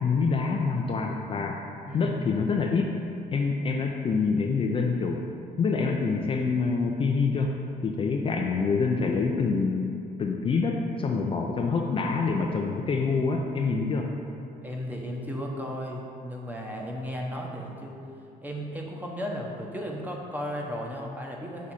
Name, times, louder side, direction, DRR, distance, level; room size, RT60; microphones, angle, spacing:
voice 1, 0.0-1.6 1.9-2.9 3.3-5.2 5.6-7.5 7.8-9.9 10.2-14.1, left 4 dB, 30° left, 1 dB, 0.4 m, -26 dB
voice 2, 14.6-18.0 18.4-21.7, equal, 10° right, -1 dB, 0.9 m, -35 dB
6.2 x 4.9 x 4.2 m, 2.6 s
cardioid pair, 110°, 17 cm